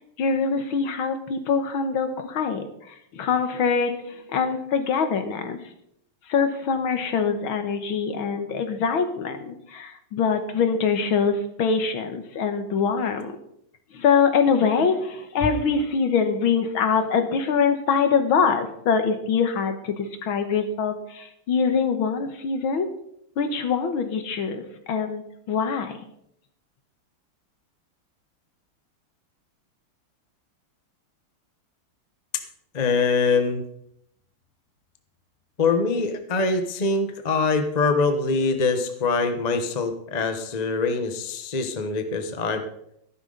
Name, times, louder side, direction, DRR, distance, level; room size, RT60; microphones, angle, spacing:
voice 1, 0.2-5.6 6.3-13.3 13.9-22.9 23.4-26.0, left 6 dB, 70° left, 7 dB, 2.0 m, -24 dB
voice 2, 32.7-33.6 35.6-42.6, left 4 dB, 30° left, 7 dB, 0.7 m, -23 dB
13.5 x 12.0 x 3.9 m, 0.74 s
omnidirectional pair, 2.3 m